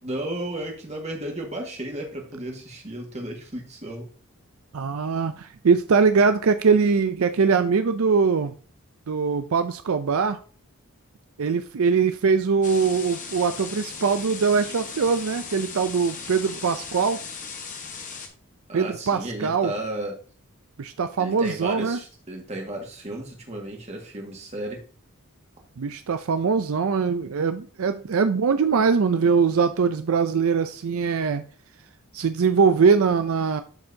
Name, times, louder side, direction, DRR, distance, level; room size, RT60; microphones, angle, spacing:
voice 1, 0.0-4.1 18.7-20.2 21.2-24.8, right 1 dB, 30° right, 1.9 m, -33 dB
voice 2, 4.7-8.5 9.1-10.4 11.4-17.2 18.7-19.7 20.8-22.0 25.8-31.4 32.1-33.6, right 5 dB, 75° right, 0.5 m, -22 dB
sound 1, 12.6-18.3, left 5 dB, 35° left, 1.3 m, -37 dB
12.5 x 4.4 x 2.8 m
head